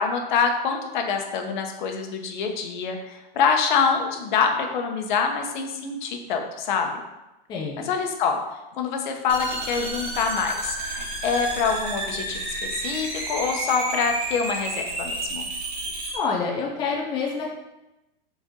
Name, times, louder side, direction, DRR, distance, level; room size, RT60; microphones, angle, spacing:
voice 1, 0.0-7.0 7.8-8.4 8.8-15.5, left 6 dB, 50° left, 4 dB, 1.1 m, -25 dB
voice 2, 7.5-7.8 16.1-17.5, left 5 dB, 15° left, -2 dB, 0.5 m, -27 dB
sound 1, 9.3-16.2, right 2 dB, 55° right, 2.2 m, -31 dB
6.8 x 4.2 x 3.8 m, 0.98 s
supercardioid pair, 160°, 30 cm